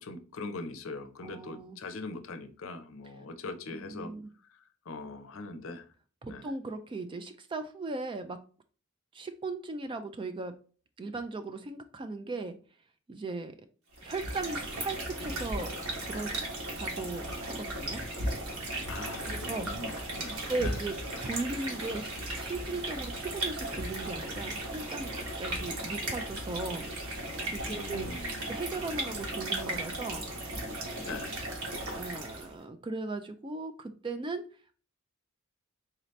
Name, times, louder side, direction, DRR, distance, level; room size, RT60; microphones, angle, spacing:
voice 1, 0.0-4.1 4.9-5.8 6.3-6.4 18.9-20.8 27.7-28.4 31.0-31.3, left 3 dB, 65° left, 8 dB, 0.6 m, -41 dB
voice 2, 1.2-1.8 3.7-4.3 6.2-8.4 9.1-10.5 11.0-12.6 13.1-13.5 14.0-15.7 16.0-16.3 16.8-18.0 19.3-19.7 20.5-26.8 27.5-28.1 28.5-30.3 31.9-34.4, right 3 dB, 25° right, 8 dB, 0.3 m, -37 dB
sound 1, 13.9-32.6, right 1 dB, 75° right, 1.4 m, -36 dB
3.9 x 2.7 x 3.1 m, 0.39 s
head